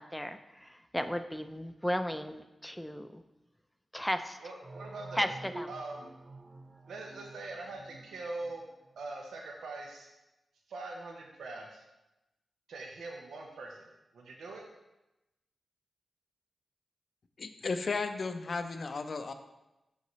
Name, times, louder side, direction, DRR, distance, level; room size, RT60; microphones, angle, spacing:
voice 1, 0.0-3.2 3.9-4.4 5.1-5.7, equal, 5° left, 8 dB, 0.4 m, -35 dB
voice 2, 4.4-5.3 5.7-6.1 6.9-8.6 9.0-10.1 10.7-11.8 12.7-13.9 14.1-14.7, right 2 dB, 85° right, 1 dB, 0.7 m, -42 dB
sound 1, 4.6-9.1, right 2 dB, 45° right, 0.6 m, -49 dB
voice 3, 17.4-19.3, left 4 dB, 65° left, 8 dB, 0.5 m, -34 dB
5.8 x 5.5 x 3.0 m, 0.98 s
supercardioid pair, 40°, 0 cm